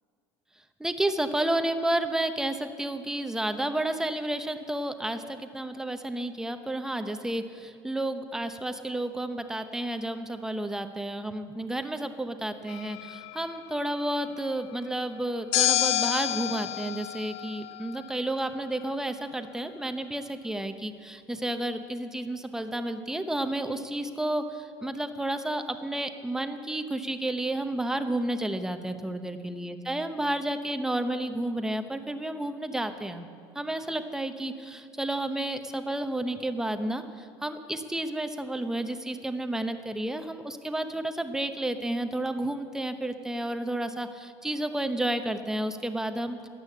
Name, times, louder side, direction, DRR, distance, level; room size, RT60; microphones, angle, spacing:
voice 1, 0.8-33.3 33.5-46.4, right 1 dB, 5° right, 7 dB, 0.8 m, -31 dB
sound 1, 12.7-13.6 15.5-18.1, left 15 dB, 75° left, 0.4 m, -29 dB
13.0 x 9.3 x 8.5 m, 2.4 s
cardioid pair, 130°, 10 cm